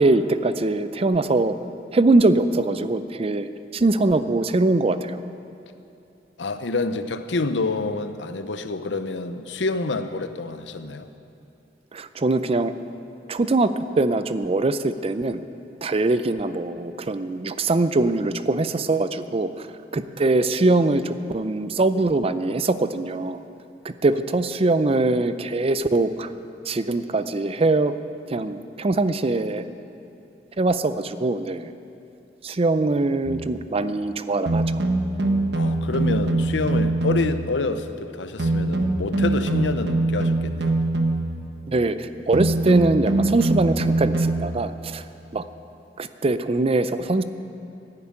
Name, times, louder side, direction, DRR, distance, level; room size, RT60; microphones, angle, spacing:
voice 1, 0.0-1.6 1.9-5.2 11.9-12.7 13.3-15.4 15.8-19.7 19.9-23.4 23.8-26.3 26.6-27.9 28.3-29.6 30.6-31.7 32.4-34.6 41.7-45.0 45.3-45.4 46.0-47.2, right 2 dB, 35° right, 12 dB, 0.5 m, -22 dB
voice 2, 6.4-11.1 35.5-40.8, left 3 dB, 75° left, 10 dB, 0.7 m, -27 dB
sound 1, 33.2-33.5 34.5-37.5 38.4-41.4 42.3-44.5, right 2 dB, 65° right, 1.1 m, -23 dB
11.5 x 10.5 x 8.8 m, 2.7 s
head